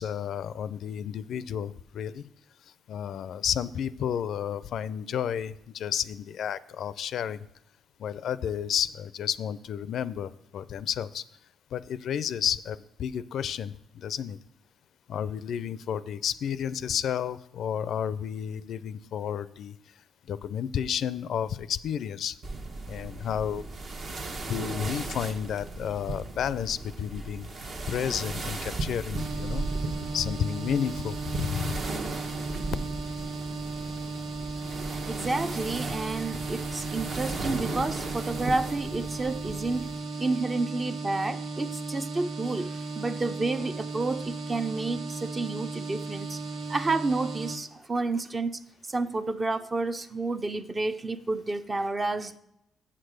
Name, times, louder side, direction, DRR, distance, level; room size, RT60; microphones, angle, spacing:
voice 1, 0.0-2.2 2.9-7.5 8.0-11.2 11.7-14.4 15.1-19.7 20.3-22.4 22.9-23.7 24.5-27.5 27.9-29.6 30.1-31.8, left 8 dB, 70° left, 16 dB, 0.4 m, -31 dB
sound 1, 22.4-40.0, right 3 dB, 50° right, 1.1 m, -36 dB
sound 2, 29.2-47.6, right 3 dB, 70° right, 0.9 m, -36 dB
voice 2, 35.1-39.9 40.2-46.4 46.7-48.6 48.9-52.4, right 3 dB, 25° right, 10 dB, 0.6 m, -30 dB
7.4 x 6.7 x 6.3 m, 0.85 s
cardioid pair, 90°, 0 cm